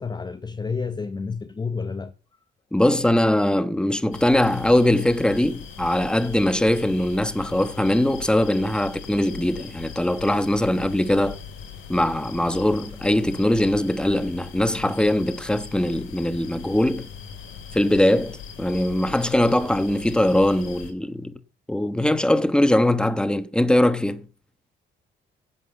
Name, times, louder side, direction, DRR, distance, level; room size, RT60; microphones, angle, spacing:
voice 1, 0.0-2.1, left 4 dB, 20° left, 0.7 m, -30 dB
voice 2, 2.7-11.4 11.9-17.1 17.7-21.4 21.7-24.3, left 1 dB, 5° left, 1.1 m, -21 dB
sound 1, 4.1-20.9, left 7 dB, 80° left, 2.7 m, -40 dB
11.0 x 7.7 x 7.0 m
cardioid pair, 90°, 20 cm